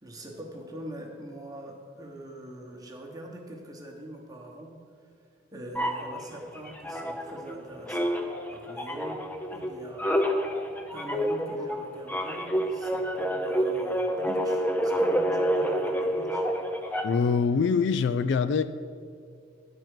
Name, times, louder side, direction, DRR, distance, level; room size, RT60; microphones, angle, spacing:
voice 1, 0.0-4.7 5.5-8.1 8.5-9.2 9.5-10.1 10.9-16.4, right 1 dB, 20° right, 0 dB, 1.1 m, -42 dB
sound 1, 5.7-7.6 7.9-17.4, equal, 10° left, 0.5 m, -28 dB
voice 2, 17.0-18.8, left 5 dB, 65° left, 13 dB, 0.3 m, -24 dB
10.5 x 4.5 x 6.4 m, 2.2 s
head